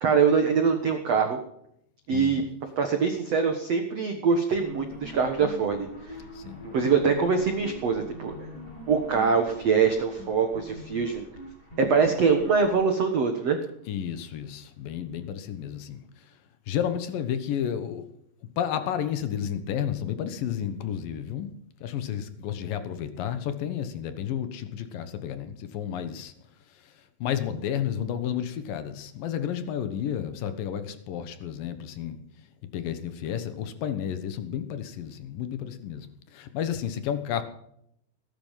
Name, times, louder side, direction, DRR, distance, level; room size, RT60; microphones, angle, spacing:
voice 1, 0.0-1.4 2.1-2.4 2.8-6.2 6.6-8.5 8.9-11.3 11.8-13.6, right 5 dB, 90° right, 5 dB, 1.4 m, -24 dB
voice 2, 2.1-2.5 6.3-6.7 13.9-16.0 16.7-18.1 18.6-21.5 21.8-26.3 27.2-32.2 32.7-37.4, left 9 dB, 65° left, 10 dB, 2.3 m, -31 dB
sound 1, 4.5-13.4, left 1 dB, 20° left, 4.8 m, -43 dB
18.5 x 11.0 x 5.7 m, 0.73 s
omnidirectional pair, 5.4 m